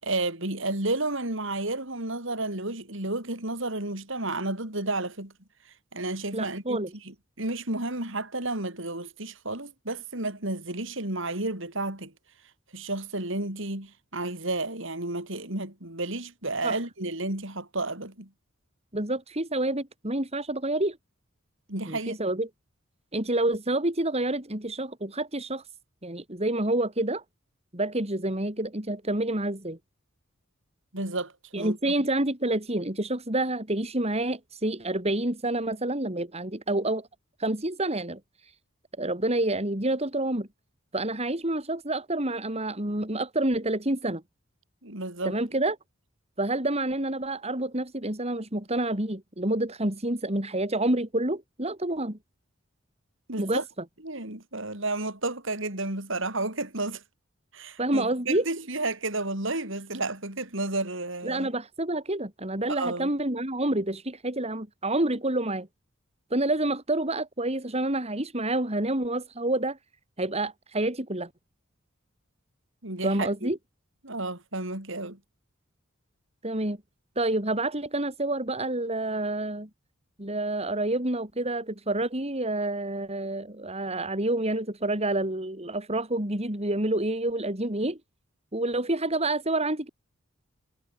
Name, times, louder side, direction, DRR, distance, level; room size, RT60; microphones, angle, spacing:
voice 1, 0.0-5.3 5.9-6.8 7.0-12.1 12.7-18.3 21.7-22.2 30.9-31.9 44.8-45.4 53.3-53.6 54.0-57.0 57.5-61.5 62.7-63.1 72.8-73.5 74.0-75.2, right 2 dB, 65° right, 6.7 m, -32 dB
voice 2, 6.3-6.9 16.6-16.8 18.9-21.0 21.8-22.5 23.1-25.6 26.0-27.2 27.7-29.8 31.5-37.1 37.4-38.2 39.0-40.5 40.9-44.2 45.2-45.8 46.4-52.2 53.4-53.6 57.8-58.5 61.2-65.7 66.3-69.8 70.2-71.3 73.0-73.6 76.4-76.8 77.2-79.7 80.2-88.0 88.5-89.9, right 1 dB, 30° right, 4.4 m, -28 dB
head